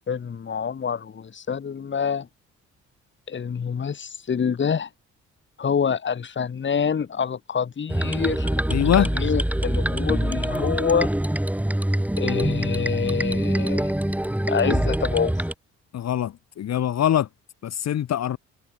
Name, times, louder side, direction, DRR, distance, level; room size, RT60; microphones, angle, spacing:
voice 1, 0.1-2.3 3.3-4.9 5.6-8.6 9.0-11.1 12.2-14.1 14.5-15.3, left 7 dB, 40° left, 2.0 m, -26 dB
sound 1, 7.9-15.5, right 1 dB, 5° right, 2.5 m, -24 dB
voice 2, 8.7-9.1 15.9-17.3 17.6-18.4, left 10 dB, 60° left, 1.5 m, -23 dB
cardioid pair, 90°, 30 cm